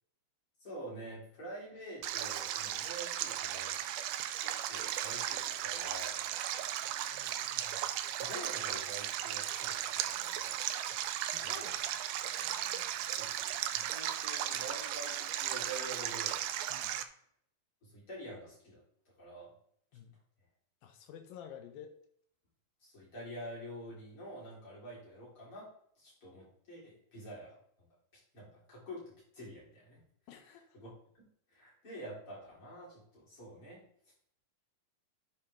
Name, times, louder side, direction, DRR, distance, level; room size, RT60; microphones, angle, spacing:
voice 1, 0.6-3.8 4.4-6.3 6.7-7.9 8.1-10.5 11.4-11.6 13.1-16.4 17.8-18.8 19.2-19.5 22.8-25.7 26.0-27.6 28.3-30.0 30.7-31.3 31.5-33.8, right 1 dB, 35° left, -6 dB, 4.4 m, -47 dB
Stream, 2.0-17.0, right 11 dB, 90° right, 1.8 m, -36 dB
voice 2, 11.3-11.8 12.4-12.9 16.7-17.0 19.9-20.2 20.8-22.0 30.3-30.8, left 8 dB, 80° left, 7 dB, 2.6 m, -51 dB
10.0 x 5.8 x 3.5 m, 0.65 s
omnidirectional pair, 4.2 m